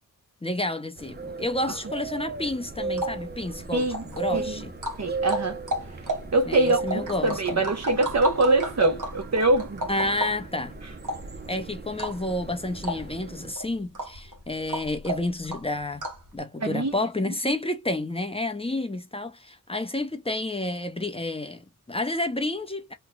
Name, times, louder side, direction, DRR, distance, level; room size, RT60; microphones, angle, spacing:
voice 1, 0.4-4.7 6.5-7.6 9.9-10.7 11.5-16.1 16.3-22.9, left 2 dB, 15° left, 0.7 m, -30 dB
sound 1, 1.0-13.5, right 4 dB, 30° right, 0.6 m, -36 dB
sound 2, 2.7-16.3, equal, 70° right, 1.3 m, -35 dB
voice 2, 3.7-4.0 4.3-4.6 5.0-5.6 6.3-9.9 11.3-11.4 16.6-16.9 17.3-17.4, right 2 dB, 55° right, 1.3 m, -24 dB
3.1 x 2.2 x 3.6 m
wide cardioid pair, 90°, 33 cm